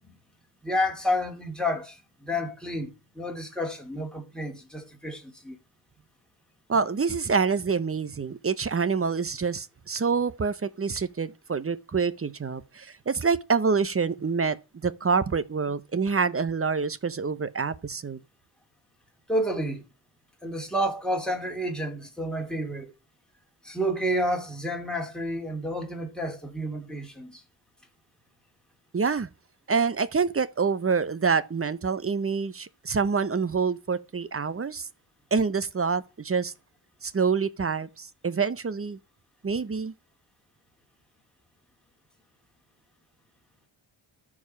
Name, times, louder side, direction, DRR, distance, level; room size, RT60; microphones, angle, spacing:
voice 1, 0.6-5.6 19.3-19.8 20.4-22.9 23.6-27.4, equal, ahead, 3.0 m, -30 dB
voice 2, 6.7-14.6 14.8-18.2 28.9-29.3 29.7-34.9 35.3-36.5 37.0-39.0 39.4-39.9, right 5 dB, 30° right, 0.8 m, -26 dB
13.0 x 4.9 x 5.7 m
cardioid pair, 85°, 47 cm